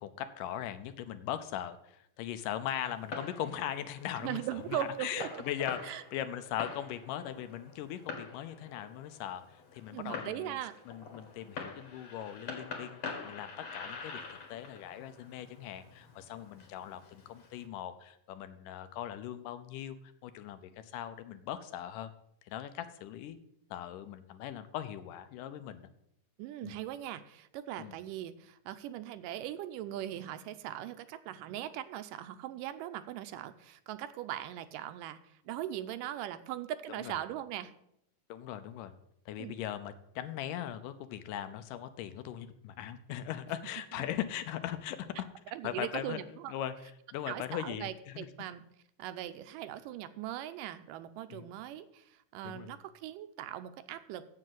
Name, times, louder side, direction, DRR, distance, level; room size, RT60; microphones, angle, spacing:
voice 1, 0.0-4.4 4.7-10.6 10.9-20.0 20.2-22.1 22.4-23.4 23.7-25.9 26.6-26.7 27.8-28.0 37.0-37.2 38.3-38.9 39.3-45.3 45.6-46.2 46.5-46.7 47.1-48.3 51.3-51.5 52.4-52.7, left 11 dB, 80° left, 11 dB, 2.3 m, -40 dB
Fireworks, 2.8-17.7, left 4 dB, 55° left, 2.6 m, -46 dB
voice 2, 4.2-5.4 5.8-6.0 9.9-10.7 26.4-35.2 35.5-37.7 39.4-39.5 43.9-44.1 45.5-46.5 47.3-48.6 49.0-54.3, right 12 dB, 85° right, 11 dB, 2.3 m, -40 dB
7.7 x 7.4 x 7.6 m, 0.75 s
omnidirectional pair, 3.8 m